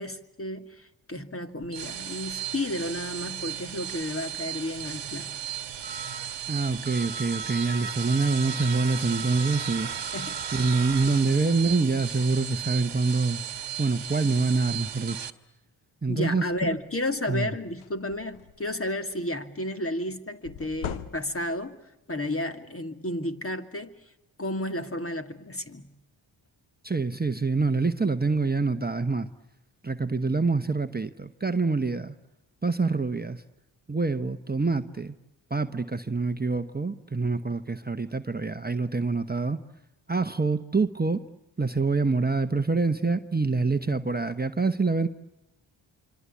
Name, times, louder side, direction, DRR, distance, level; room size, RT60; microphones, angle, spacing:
voice 1, 0.0-5.4 10.1-10.7 16.1-21.8 22.1-23.9 24.4-25.9, left 1 dB, 25° left, 8 dB, 2.4 m, -32 dB
sound 1, 1.6-15.3, right 8 dB, 60° right, 1.4 m, -35 dB
voice 2, 6.5-9.9 10.5-13.4 13.8-15.3 16.0-16.7 17.3-17.5 26.8-29.3 29.8-32.1 32.6-33.4 33.9-35.1 35.5-39.6 40.1-41.2 41.6-45.1, right 3 dB, 20° right, 8 dB, 1.1 m, -26 dB
sound 2, 16.5-16.8 17.2-17.4 17.7-18.8 20.4-21.7, left 9 dB, 85° left, 1.1 m, -39 dB
26.5 x 25.5 x 8.5 m, 0.91 s
supercardioid pair, 40°, 48 cm